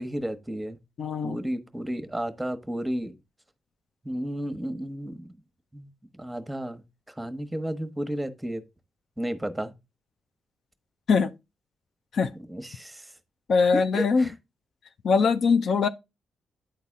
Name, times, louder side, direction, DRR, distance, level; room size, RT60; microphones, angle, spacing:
voice 1, 0.0-0.8 1.2-3.1 4.0-5.3 5.7-6.8 7.2-8.6 9.2-9.7 12.5-13.1 13.7-14.3, equal, 10° right, 1.0 m, -32 dB
voice 2, 1.0-1.4 11.1-11.3 12.1-12.3 13.5-14.3 15.0-15.9, left 5 dB, 60° left, 0.5 m, -22 dB
9.4 x 4.0 x 3.6 m
hypercardioid pair, 40°, 0 cm